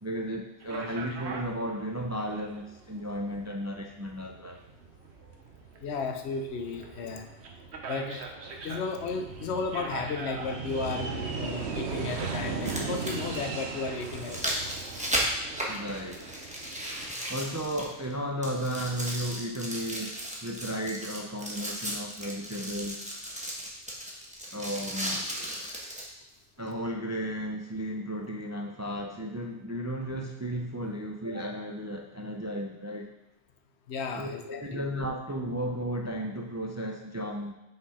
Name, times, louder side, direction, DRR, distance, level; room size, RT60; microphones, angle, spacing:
voice 1, 0.0-4.6 15.7-16.3 17.3-23.0 24.5-25.3 26.6-33.1 34.2-37.5, equal, 30° right, 2 dB, 0.3 m, -34 dB
sound 1, 0.6-17.1, right 4 dB, 80° right, 1.1 m, -38 dB
voice 2, 5.8-7.3 7.8-8.3 8.6-14.6 33.9-34.8, left 4 dB, 80° left, 4 dB, 1.0 m, -34 dB
sound 2, 11.2-11.3 12.4-18.1 18.4-26.1 26.7-26.8, equal, 5° right, 1.0 m, -35 dB
5.7 x 5.5 x 4.2 m, 0.92 s
omnidirectional pair, 1.1 m